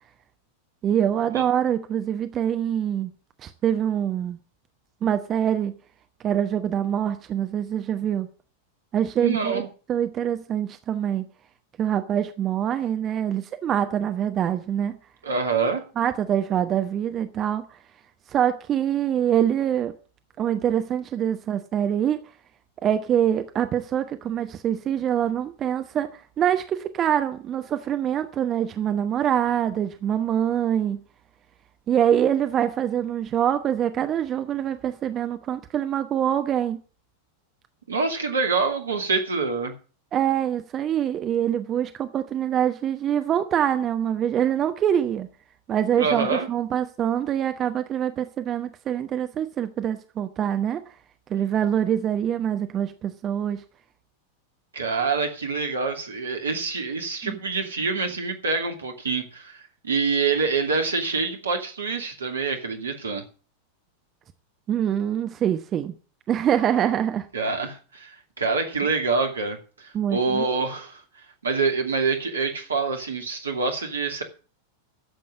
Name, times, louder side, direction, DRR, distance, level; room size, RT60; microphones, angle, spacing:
voice 1, 0.8-3.1 3.4-4.4 5.0-5.7 6.2-8.3 8.9-9.6 9.9-11.2 11.8-15.0 16.0-17.8 18.3-19.9 20.4-22.2 22.8-31.0 31.9-36.8 40.1-45.3 45.7-50.8 51.3-53.6 57.2-57.4 64.7-65.9 66.3-67.3 69.9-70.5, right 9 dB, 30° right, 1.0 m, -24 dB
voice 2, 9.2-9.7 15.2-15.8 37.9-39.7 45.9-46.5 54.7-63.2 67.3-71.0 71.4-74.2, right 4 dB, 70° right, 2.5 m, -26 dB
13.0 x 7.7 x 7.6 m
figure-of-eight pair, 90°, 0 cm